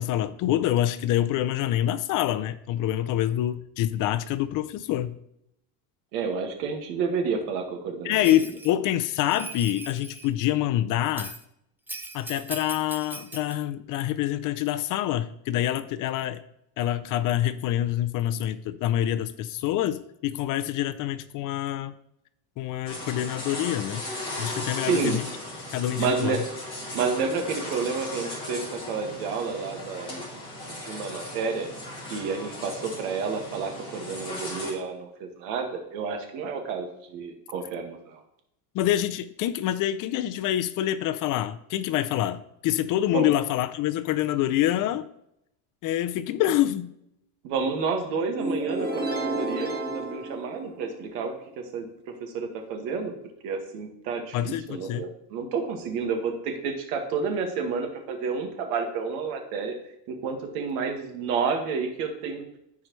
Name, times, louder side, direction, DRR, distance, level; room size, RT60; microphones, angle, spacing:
voice 1, 0.0-5.2 8.0-11.4 12.1-16.4 16.8-21.9 22.6-24.0 24.4-25.3 25.7-26.4 38.7-45.1 45.8-46.9 54.3-55.0, left 12 dB, 50° left, 0.5 m, -26 dB
voice 2, 6.1-8.5 24.8-25.2 26.0-26.4 26.9-30.2 30.8-31.7 32.1-38.2 43.1-43.3 47.4-51.9 52.2-53.1 53.4-59.7 60.1-62.5, right 5 dB, 75° right, 1.9 m, -30 dB
Bell, 8.2-8.7 9.2-10.3 11.2-11.4 11.9-13.5, right 2 dB, 5° right, 0.5 m, -39 dB
sound 1, 22.9-34.7, left 1 dB, 10° left, 3.0 m, -37 dB
sound 2, 48.4-51.2, right 2 dB, 20° right, 1.5 m, -31 dB
14.0 x 4.8 x 3.2 m
cardioid pair, 130°, 43 cm